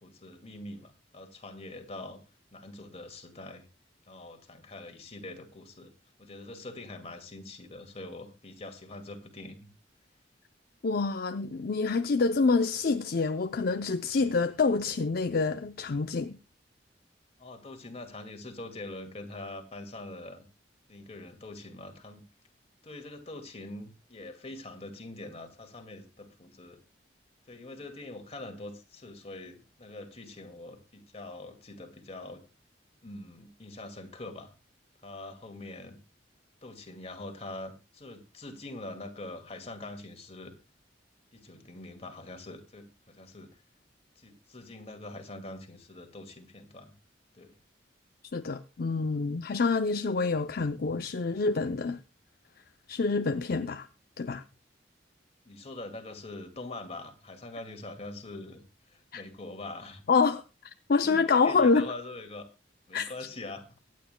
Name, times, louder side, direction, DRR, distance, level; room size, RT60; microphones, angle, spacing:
voice 1, 0.0-2.2 2.5-3.7 4.1-5.9 6.2-9.7 17.4-20.5 20.9-22.2 22.8-26.8 27.5-32.4 33.0-34.5 35.0-36.0 36.6-40.5 41.3-43.6 44.2-46.9 47.3-47.6 55.4-58.6 58.9-60.0 61.0-62.5 62.9-63.6, left 2 dB, 35° left, 2.1 m, -44 dB
voice 2, 10.8-16.4 48.3-52.0 52.9-53.9 54.2-54.4 59.1-59.2 60.1-60.4 60.9-61.9 62.9-63.1, left 4 dB, 55° left, 0.5 m, -27 dB
24.0 x 9.4 x 2.2 m
head